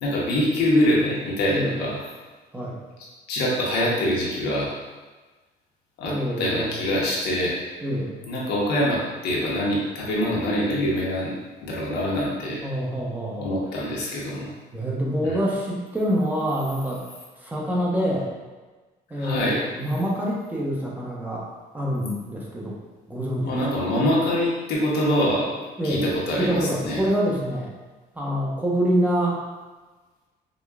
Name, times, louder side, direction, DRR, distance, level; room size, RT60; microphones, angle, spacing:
voice 1, 0.0-2.0 3.3-4.7 6.0-7.6 8.3-11.3 11.6-12.6 13.4-14.5 15.2-15.4 19.1-19.6 23.4-25.5 25.8-27.0, left 1 dB, 75° left, -4 dB, 1.0 m, -24 dB
voice 2, 6.0-6.9 7.8-8.2 12.6-13.6 14.7-17.0 17.4-18.3 19.1-21.4 21.7-22.8 23.1-23.8 25.8-26.1 26.4-27.7 28.1-29.4, equal, 10° right, -4 dB, 0.8 m, -26 dB
4.9 x 2.3 x 2.3 m, 1.3 s
cardioid pair, 110°, 17 cm